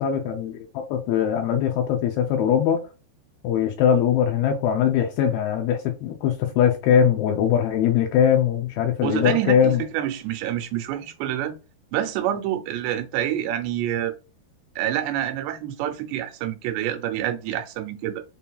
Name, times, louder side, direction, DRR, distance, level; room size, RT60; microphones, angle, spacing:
voice 1, 0.0-2.8 3.4-9.8, left 8 dB, 80° left, 2.2 m, -21 dB
voice 2, 9.0-11.5 11.9-14.1 14.8-18.2, right 11 dB, 85° right, 2.8 m, -27 dB
6.9 x 2.6 x 2.3 m
omnidirectional pair, 4.8 m